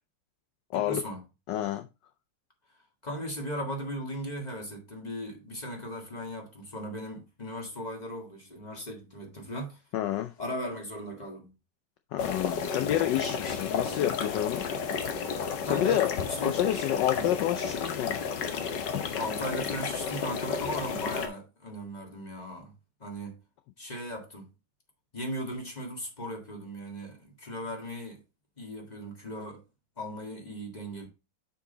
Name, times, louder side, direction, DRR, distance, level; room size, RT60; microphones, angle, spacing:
voice 1, 0.7-1.2 3.0-9.8 10.4-11.5 15.6-16.6 17.1-17.2 19.1-22.7 23.0-23.4 23.8-24.5 25.1-28.2 28.6-29.6 30.0-31.1, equal, 20° left, 1.6 m, -37 dB
voice 2, 1.5-1.9 9.9-10.3 12.1-14.6 15.6-16.1 16.4-18.2, left 12 dB, 75° left, 1.0 m, -29 dB
sound 1, 12.2-21.3, left 6 dB, 60° left, 1.4 m, -32 dB
6.6 x 5.3 x 3.8 m
omnidirectional pair, 2.4 m